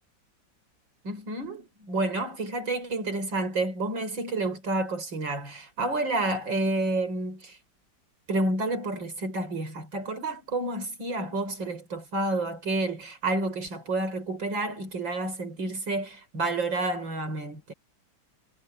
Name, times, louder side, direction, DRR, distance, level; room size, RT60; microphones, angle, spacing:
voice 1, 1.0-7.6 8.3-17.7, right 2 dB, 75° right, 5.9 m, -30 dB
omnidirectional pair, 2.1 m